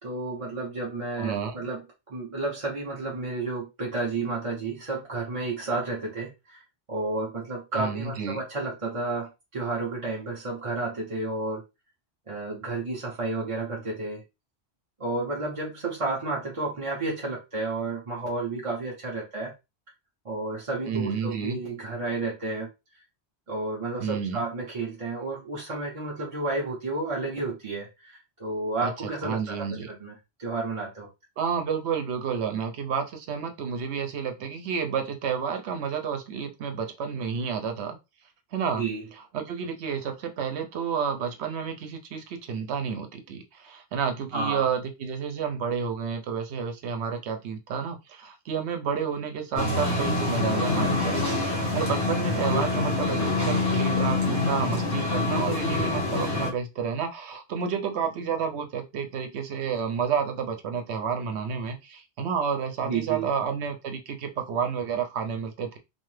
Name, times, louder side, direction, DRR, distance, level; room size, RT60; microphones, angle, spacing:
voice 1, 0.0-6.6 6.9-11.6 12.3-14.2 15.0-19.5 20.2-22.7 23.5-31.1 38.8-39.0 44.3-44.7 62.8-63.2, right 3 dB, 35° right, -4 dB, 0.8 m, -31 dB
voice 2, 1.2-1.6 7.8-8.4 20.9-21.6 24.0-24.4 28.8-29.9 31.4-38.0 38.5-38.8 39.3-65.8, right 6 dB, 80° right, 5 dB, 0.9 m, -30 dB
sound 1, 49.6-56.5, left 2 dB, 20° left, 0.8 m, -26 dB
3.1 x 2.0 x 3.1 m, 0.25 s
omnidirectional pair, 1.1 m